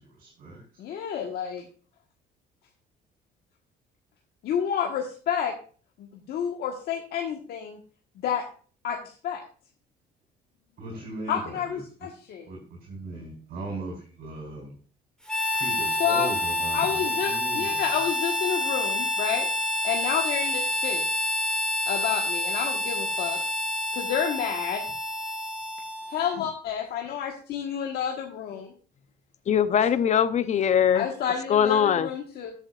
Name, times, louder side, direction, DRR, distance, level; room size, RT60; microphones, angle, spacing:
voice 1, 0.0-0.8 10.8-11.8 12.5-14.7 15.5-17.8, right 2 dB, 65° right, -3 dB, 4.4 m, -38 dB
voice 2, 0.8-1.7 4.4-5.5 6.0-7.8 8.2-8.4 8.8-9.0 9.2-9.4 11.3-12.5 16.0-16.3 16.7-19.5 19.8-21.0 21.9-23.4 23.9-24.9 26.1-28.7 30.9-32.5, left 8 dB, 70° left, 1 dB, 1.4 m, -29 dB
Harmonica, 15.3-26.4, left 2 dB, 5° left, 2.2 m, -28 dB
voice 3, 29.5-31.1 31.5-32.1, left 8 dB, 45° left, 13 dB, 0.7 m, -21 dB
13.5 x 7.9 x 2.4 m, 0.41 s
cardioid pair, 110°, 17 cm